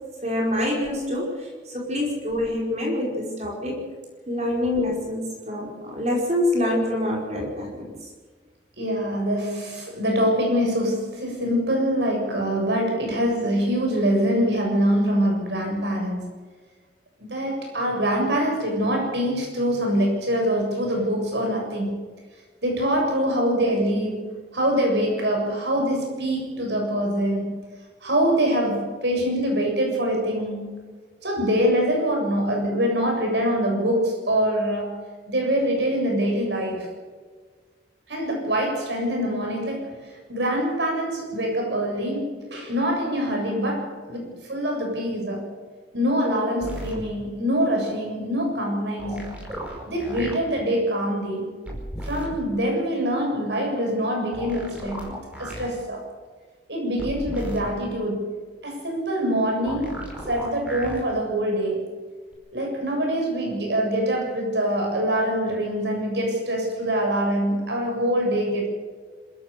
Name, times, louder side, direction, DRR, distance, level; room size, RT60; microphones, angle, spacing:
voice 1, 0.2-3.9 4.3-7.9, left 1 dB, 40° right, -1 dB, 5.2 m, -26 dB
voice 2, 8.8-16.3 17.2-22.0 22.6-27.5 28.0-30.8 31.2-36.9 38.1-45.5 45.9-49.3 49.9-51.5 52.0-56.1 56.7-58.4 58.6-61.9 62.5-68.7, equal, 75° right, 1 dB, 7.5 m, -24 dB
sound 1, 46.6-47.0 49.0-50.3 51.7-52.3 54.3-55.7 57.0-57.7 59.7-61.0 62.3-62.4, equal, 5° right, 5.2 m, -35 dB
26.5 x 14.5 x 6.9 m, 1.4 s
head